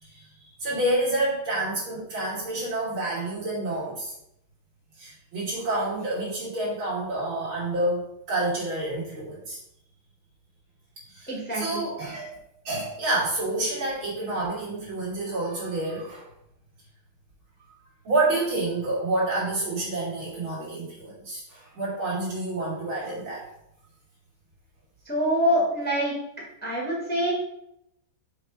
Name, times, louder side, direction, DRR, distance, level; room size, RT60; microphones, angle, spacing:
voice 1, 0.0-4.1 5.0-9.6 11.1-12.4 12.7-16.3 18.0-23.5, right 2 dB, 70° right, -7 dB, 3.6 m, -28 dB
voice 2, 11.3-11.8 25.0-26.1 26.6-27.3, equal, 5° left, -4 dB, 1.5 m, -25 dB
6.7 x 3.4 x 5.0 m, 0.79 s
omnidirectional pair, 2.3 m